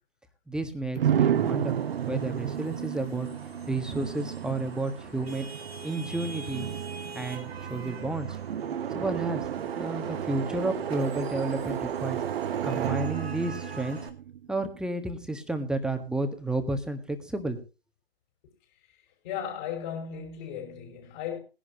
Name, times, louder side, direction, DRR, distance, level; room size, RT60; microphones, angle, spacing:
voice 1, 0.5-1.8 2.1-3.3 3.7-5.5 5.8-6.7 7.1-8.4 8.9-9.5 9.8-12.2 12.6-14.1 14.5-17.6, right 2 dB, ahead, 1.4 m, -31 dB
sound 1, 1.0-14.8, right 9 dB, 65° right, 0.7 m, -32 dB
Vehicle horn car horn honking / Traffic noise roadway noise, 1.3-14.1, right 4 dB, 85° right, 2.5 m, -43 dB
voice 2, 19.2-21.4, left 8 dB, 50° left, 5.5 m, -36 dB
20.0 x 11.0 x 2.8 m
figure-of-eight pair, 115°, 31 cm